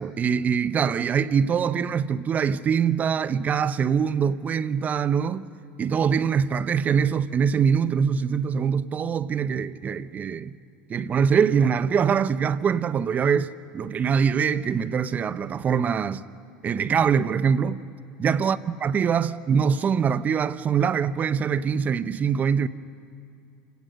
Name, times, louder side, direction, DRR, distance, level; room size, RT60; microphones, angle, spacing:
voice 1, 0.0-5.5 5.8-10.5 10.9-16.2 16.6-17.8 18.2-22.7, right 7 dB, 30° right, 0.8 m, -23 dB
28.5 x 17.5 x 6.5 m
supercardioid pair, 100°, 5 cm